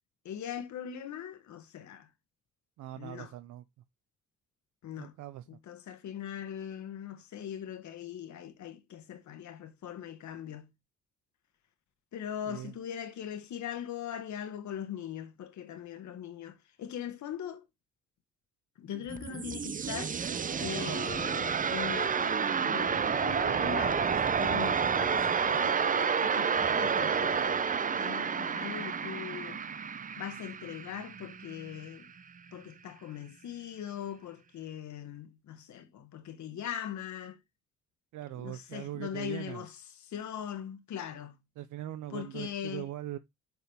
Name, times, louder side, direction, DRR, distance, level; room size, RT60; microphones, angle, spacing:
voice 1, 0.2-2.1 2.9-3.3 4.8-5.1 5.5-10.7 12.1-17.6 18.8-20.2 20.6-27.6 27.9-29.6 30.2-32.1 32.5-37.4 38.3-41.4 42.1-42.9, left 9 dB, 70° left, 1.5 m, -41 dB
voice 2, 2.8-3.6 5.0-5.4 12.5-12.7 38.1-39.6 41.6-43.2, right 13 dB, 80° right, 0.6 m, -41 dB
sound 1, 18.9-31.8, right 6 dB, 25° right, 0.5 m, -30 dB
9.4 x 4.7 x 3.3 m
cardioid pair, 90°, 30 cm